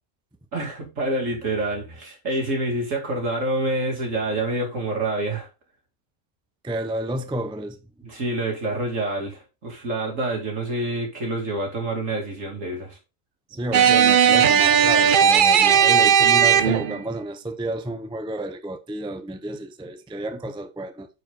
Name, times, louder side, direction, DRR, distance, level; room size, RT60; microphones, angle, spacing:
voice 1, 0.5-5.5 8.0-13.0, right 2 dB, 70° right, 3.0 m, -27 dB
voice 2, 6.6-7.8 13.5-21.1, right 1 dB, 5° right, 0.5 m, -31 dB
sound 1, 13.7-17.0, right 8 dB, 55° right, 0.6 m, -16 dB
9.4 x 4.9 x 3.7 m
omnidirectional pair, 1.4 m